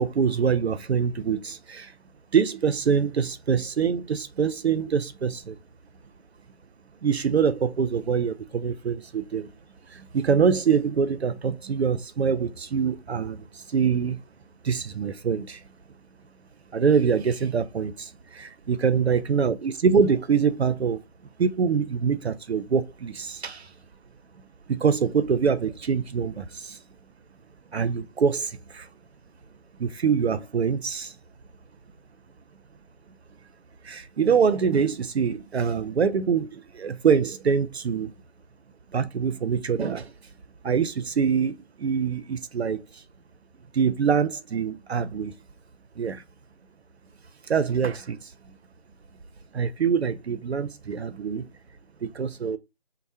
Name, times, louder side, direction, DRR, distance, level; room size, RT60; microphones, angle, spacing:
voice 1, 0.0-1.9 2.3-5.6 7.0-9.5 9.9-14.2 14.6-15.6 16.7-21.0 21.4-23.7 24.7-26.8 27.7-28.9 29.8-31.2 33.8-38.1 38.9-40.1 40.6-43.0 43.7-45.4 46.0-46.2 47.5-48.3 49.5-51.5 52.0-52.6, right 6 dB, 70° right, 0.5 m, -24 dB
2.7 x 2.0 x 3.3 m
figure-of-eight pair, 170°, 33 cm